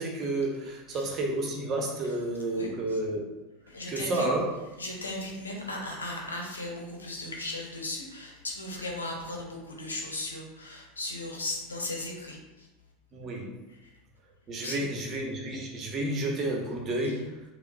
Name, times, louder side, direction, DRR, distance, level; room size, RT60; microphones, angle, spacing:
voice 1, 0.0-3.2 3.9-4.5 13.1-13.5 14.5-17.4, right 2 dB, 35° right, 0 dB, 1.0 m, -31 dB
voice 2, 2.5-3.0 3.7-4.3 4.8-12.7 13.7-13.9 14.6-14.8, left 2 dB, 90° left, 0 dB, 0.8 m, -37 dB
6.8 x 2.3 x 2.3 m, 1.0 s
hypercardioid pair, 80°, 0 cm